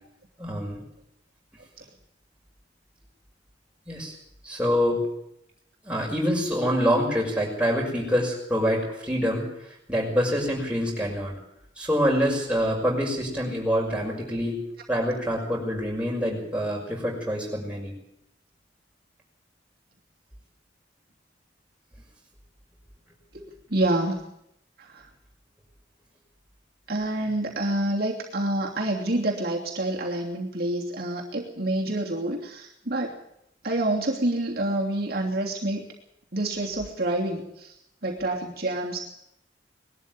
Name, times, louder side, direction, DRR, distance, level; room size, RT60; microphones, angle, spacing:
voice 1, 0.4-0.8 3.9-4.1 4.4-5.0 5.8-9.5 9.9-11.3 11.8-14.6 14.9-17.9, equal, 5° right, -2 dB, 6.1 m, -26 dB
voice 2, 23.7-24.2 24.8-25.1 26.9-33.1 33.6-35.9 36.3-37.8 38.0-39.0, right 1 dB, 55° right, -2 dB, 3.0 m, -27 dB
21.0 x 12.5 x 9.8 m, 0.78 s
head